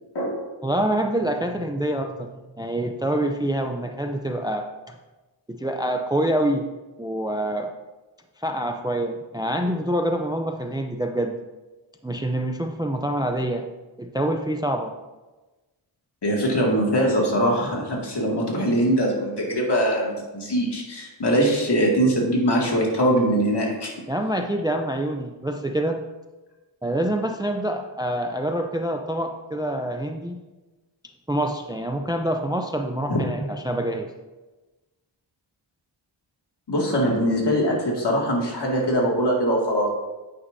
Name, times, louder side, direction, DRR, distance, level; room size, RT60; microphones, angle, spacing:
voice 1, 0.6-2.3 2.6-5.0 5.5-6.7 7.0-7.7 8.4-11.3 12.0-13.7 14.0-14.9 24.1-26.0 26.8-30.4 31.3-34.1, right 1 dB, 10° right, 5 dB, 0.5 m, -26 dB
voice 2, 16.2-23.9 33.1-33.2 36.7-39.9, equal, 55° left, -2 dB, 2.2 m, -22 dB
9.4 x 9.1 x 2.7 m, 1.2 s
wide cardioid pair, 105°, 48 cm